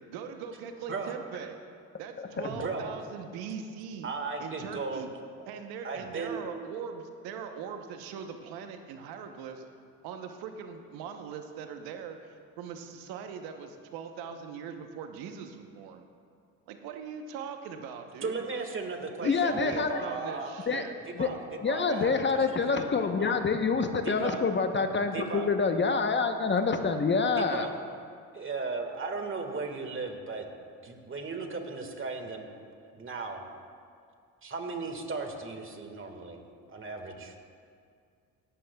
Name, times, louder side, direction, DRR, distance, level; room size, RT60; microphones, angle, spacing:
voice 1, 0.1-1.6 2.0-4.1 4.4-5.1 5.5-9.7 10.0-16.1 16.7-18.5 19.2-20.9, right 7 dB, 80° right, 6 dB, 1.0 m, -41 dB
voice 2, 2.5-3.0 4.0-5.0 5.8-6.4 18.2-20.5 21.0-22.4 22.7-23.3 24.0-24.4 25.0-25.5 27.3-27.7 28.3-30.5 30.8-32.5 32.8-33.4 34.4-37.4, right 4 dB, 35° right, 4 dB, 1.8 m, -36 dB
voice 3, 19.2-20.0 20.7-20.8 21.2-21.3 21.6-27.6, left 4 dB, 30° left, 7 dB, 0.9 m, -27 dB
17.0 x 12.5 x 2.3 m, 2.2 s
supercardioid pair, 70°, 37 cm